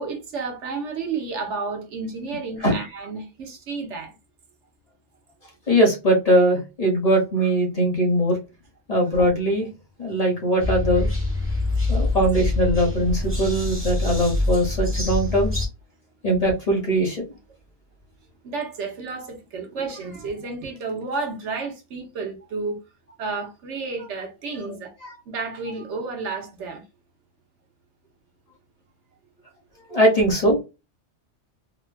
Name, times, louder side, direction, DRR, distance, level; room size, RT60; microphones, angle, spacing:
voice 1, 0.0-4.1 18.4-22.8 23.2-24.9 25.3-26.8, right 4 dB, 80° right, 1.2 m, -31 dB
voice 2, 5.7-8.4 8.9-9.7 10.0-11.1 11.9-15.6 16.2-17.2 29.9-30.6, equal, 35° left, 1.1 m, -20 dB
sound 1, 10.6-15.7, left 2 dB, 10° right, 0.9 m, -25 dB
3.6 x 2.2 x 2.2 m
omnidirectional pair, 1.2 m